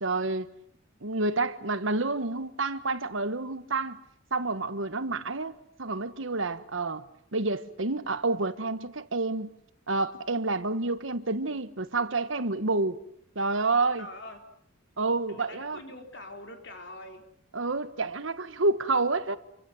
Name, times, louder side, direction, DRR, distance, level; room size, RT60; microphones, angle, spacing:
voice 1, 0.0-0.5 1.0-4.0 4.3-7.1 7.3-9.6 9.9-13.0 13.3-14.1 15.0-15.8 17.5-19.4, right 3 dB, 70° right, 1.4 m, -29 dB
voice 2, 13.9-14.4 15.3-17.3, left 2 dB, 60° left, 4.3 m, -44 dB
27.5 x 24.5 x 7.9 m
head